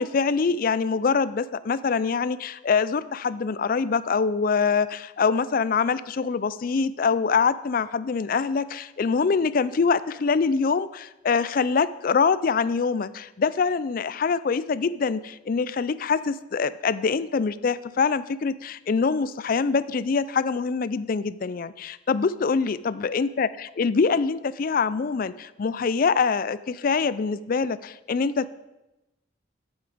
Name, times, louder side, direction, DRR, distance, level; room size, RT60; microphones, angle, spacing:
voice 1, 0.0-28.6, left 5 dB, 45° left, 16 dB, 0.4 m, -24 dB
9.2 x 8.1 x 5.0 m, 0.96 s
head